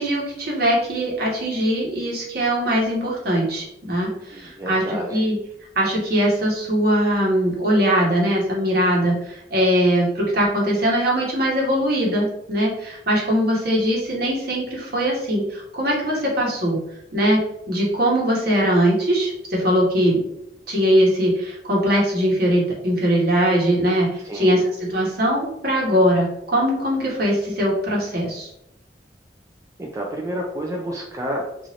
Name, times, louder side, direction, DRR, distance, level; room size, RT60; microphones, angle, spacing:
voice 1, 0.0-5.4 5.7-16.8 17.1-17.4 17.7-20.3 20.7-28.5, equal, 60° right, -3 dB, 1.0 m, -21 dB
voice 2, 4.3-5.2 24.2-24.6 29.8-31.7, equal, 20° right, -1 dB, 0.3 m, -30 dB
3.0 x 2.5 x 2.7 m, 0.80 s
head